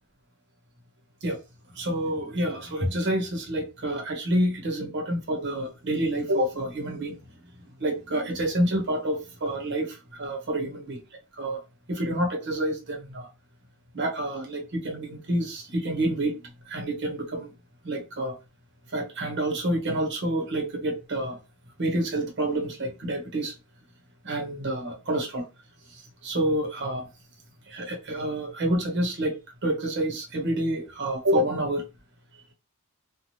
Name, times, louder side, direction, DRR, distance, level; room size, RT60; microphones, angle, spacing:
voice 1, 1.8-7.1 7.8-11.0 11.4-11.6 11.9-13.3 13.9-16.3 16.7-17.5 17.8-18.3 18.9-21.4 21.8-23.5 24.2-25.4 26.2-27.1 27.7-29.3 29.6-31.8, right 1 dB, 55° right, 0.9 m, -28 dB
3.1 x 2.2 x 2.6 m
head